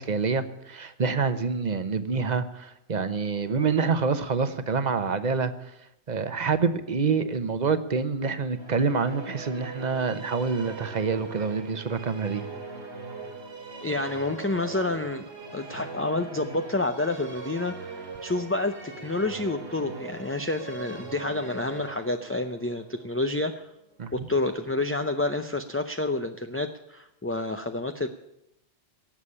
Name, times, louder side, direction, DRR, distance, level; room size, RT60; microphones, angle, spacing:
voice 1, 0.0-5.5 6.1-12.4 24.0-24.3, right 5 dB, 40° right, 11 dB, 1.0 m, -27 dB
Musical instrument, 8.4-23.8, right 3 dB, 75° right, 2.7 m, -40 dB
voice 2, 13.8-15.2 15.5-23.7 24.1-28.1, left 2 dB, 15° left, 6 dB, 0.5 m, -29 dB
18.0 x 7.3 x 9.8 m, 0.83 s
omnidirectional pair, 1.2 m